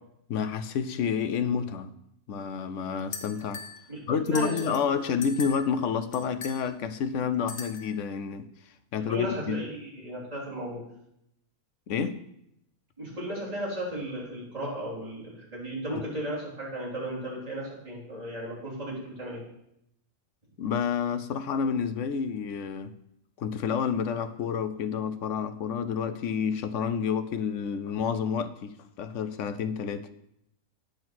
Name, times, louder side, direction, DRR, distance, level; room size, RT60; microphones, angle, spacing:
voice 1, 0.3-1.9 2.3-3.6 4.1-8.5 8.9-9.6 11.9-12.2 15.9-16.0 20.6-22.9 23.4-30.1, left 6 dB, 65° left, 11 dB, 0.9 m, -29 dB
sound 1, 3.1-3.8 4.3-4.9 5.2-5.7 6.1-6.6 7.5-8.0, left 4 dB, 40° left, 1.1 m, -39 dB
voice 2, 3.9-4.6 8.9-10.8 13.0-19.4, equal, 25° right, -6 dB, 3.5 m, -35 dB
9.3 x 6.6 x 6.0 m, 0.78 s
omnidirectional pair, 1.5 m